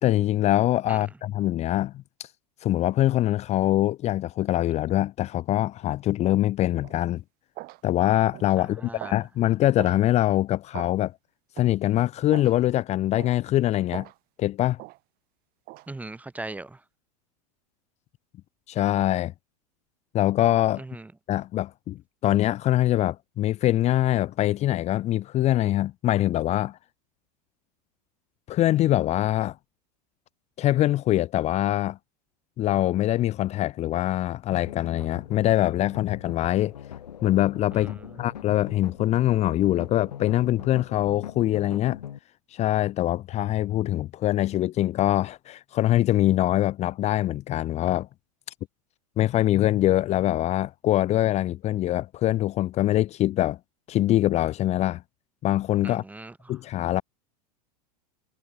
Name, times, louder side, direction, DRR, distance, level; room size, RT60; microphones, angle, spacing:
voice 1, 0.0-2.3 2.6-7.2 7.8-11.1 11.6-14.1 14.4-14.8 18.7-19.3 20.1-20.8 21.3-26.8 28.5-29.6 30.6-32.0 32.6-36.8 37.2-42.0 42.5-48.1 49.2-53.6 53.9-55.0 55.4-56.0 56.5-57.0, left 14 dB, 35° left, 0.6 m, -23 dB
sound 1, 6.8-7.0 7.6-7.8 8.3-8.6 9.0-9.2 9.8-10.0 10.7-11.0 11.6-11.7 12.3-12.6 13.2-13.4 13.9-14.2 14.8-15.0 15.7-15.9, right 21 dB, 45° right, 2.0 m, -40 dB
voice 2, 8.6-9.1 15.9-16.8 20.8-21.1 37.7-38.2 55.8-56.6, right 2 dB, 5° right, 0.8 m, -40 dB
sound 2, 34.5-42.2, left 9 dB, 85° left, 1.3 m, -40 dB
hypercardioid pair, 105°, 21 cm